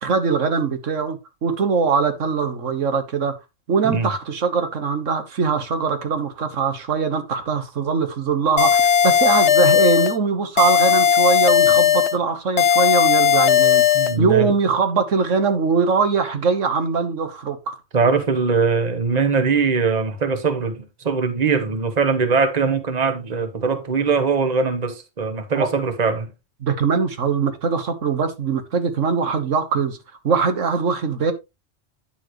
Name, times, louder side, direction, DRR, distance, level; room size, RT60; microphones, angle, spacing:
voice 1, 0.0-3.3 3.7-13.8 14.2-17.8 25.5-25.7 26.6-30.0 30.2-31.3, right 5 dB, 90° right, 1.6 m, -22 dB
sound 1, 8.6-10.2 10.6-12.2 12.6-14.2, left 8 dB, 65° left, 0.9 m, -16 dB
voice 2, 13.9-14.5 17.9-26.3, right 5 dB, 35° right, 1.3 m, -21 dB
9.9 x 7.2 x 3.1 m
omnidirectional pair, 1.3 m